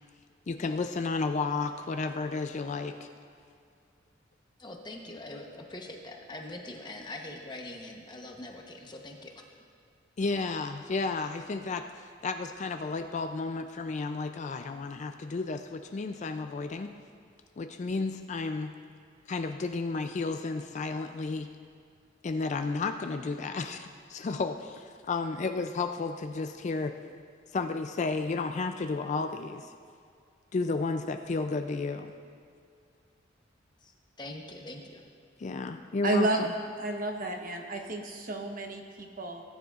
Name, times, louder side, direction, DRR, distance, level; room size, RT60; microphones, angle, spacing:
voice 1, 0.5-2.9 10.2-11.8 12.2-16.9 17.6-18.7 19.3-21.5 22.2-27.0 27.5-29.7 30.5-32.1 35.4-36.5, left 3 dB, 40° left, 7 dB, 0.4 m, -32 dB
voice 2, 4.6-9.3 33.8-35.0, left 1 dB, 25° left, 1 dB, 1.0 m, -43 dB
voice 3, 36.0-36.4 36.8-39.4, right 2 dB, 45° right, 2 dB, 1.0 m, -31 dB
18.0 x 9.6 x 2.5 m, 2.3 s
head